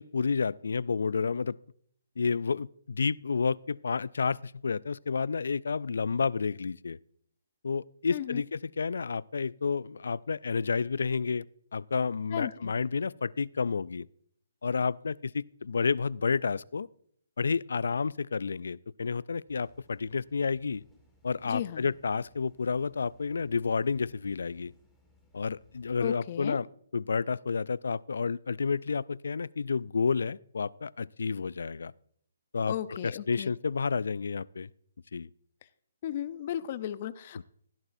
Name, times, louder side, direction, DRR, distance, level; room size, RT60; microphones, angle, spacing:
voice 1, 0.0-1.6 2.2-7.0 7.6-11.5 11.7-14.1 14.6-16.9 17.4-20.8 21.2-24.7 25.3-26.7 26.9-31.9 32.5-34.7 35.1-35.3 37.4-37.5, left 5 dB, 80° left, 0.3 m, -30 dB
voice 2, 8.1-8.4 12.3-12.7 21.4-21.9 26.0-26.6 32.7-33.5 36.0-37.4, left 11 dB, 40° left, 0.6 m, -35 dB
sound 1, 19.5-26.0, left 2 dB, ahead, 1.9 m, -65 dB
15.5 x 11.0 x 2.6 m
hypercardioid pair, 155°, 0 cm